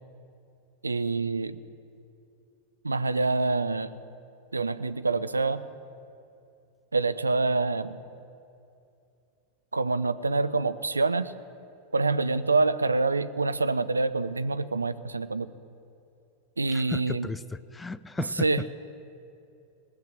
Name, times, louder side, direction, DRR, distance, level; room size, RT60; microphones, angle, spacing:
voice 1, 0.8-1.6 2.8-4.0 4.5-5.6 6.9-8.0 9.7-11.3 11.9-15.5 16.6-17.3 18.4-18.6, right 3 dB, 80° right, 12 dB, 0.5 m, -26 dB
voice 2, 16.7-18.7, left 4 dB, 10° left, 16 dB, 0.3 m, -35 dB
19.0 x 6.7 x 7.6 m, 2.6 s
figure-of-eight pair, 90°, 0 cm